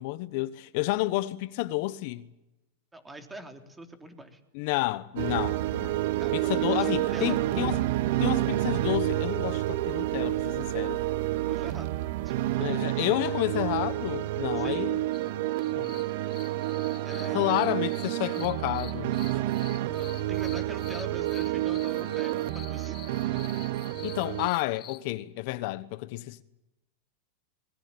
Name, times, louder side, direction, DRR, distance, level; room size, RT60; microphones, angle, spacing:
voice 1, 0.0-2.3 4.5-6.0 6.3-7.8 8.2-11.0 12.6-15.0 15.8-15.9 17.2-19.1 24.0-26.4, left 18 dB, 60° left, 1.1 m, -30 dB
voice 2, 2.9-4.4 6.0-7.8 11.3-11.9 12.2-12.3 12.7-12.8 14.5-14.9 17.0-17.6 19.3-23.0, right 1 dB, 10° right, 3.5 m, -44 dB
sound 1, 5.2-24.5, right 15 dB, 65° right, 1.2 m, -29 dB
sound 2, 15.1-25.0, left 12 dB, 35° left, 1.6 m, -48 dB
25.5 x 21.5 x 8.8 m
supercardioid pair, 130°, 0 cm